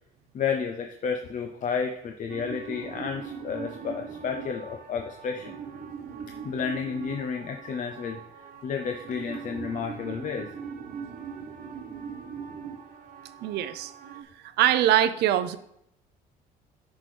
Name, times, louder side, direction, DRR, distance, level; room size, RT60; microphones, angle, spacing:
voice 1, 0.3-5.5 6.4-10.5, left 6 dB, 50° left, 4 dB, 0.6 m, -31 dB
sound 1, 2.3-14.2, right 6 dB, 55° right, 1.0 m, -41 dB
voice 2, 13.4-14.3 14.6-15.6, right 12 dB, 75° right, 12 dB, 0.6 m, -23 dB
9.6 x 6.0 x 3.3 m, 0.76 s
cardioid pair, 110°, 17 cm